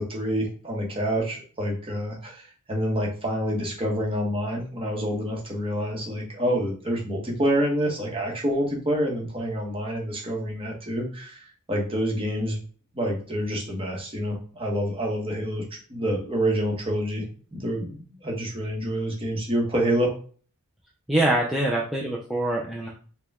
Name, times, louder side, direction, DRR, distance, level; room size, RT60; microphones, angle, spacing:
voice 1, 0.0-12.6 12.9-17.2 17.5-20.1, equal, 25° right, -2 dB, 1.1 m, -27 dB
voice 2, 21.1-22.9, right 1 dB, ahead, -4 dB, 0.4 m, -24 dB
4.8 x 2.2 x 3.5 m, 0.42 s
head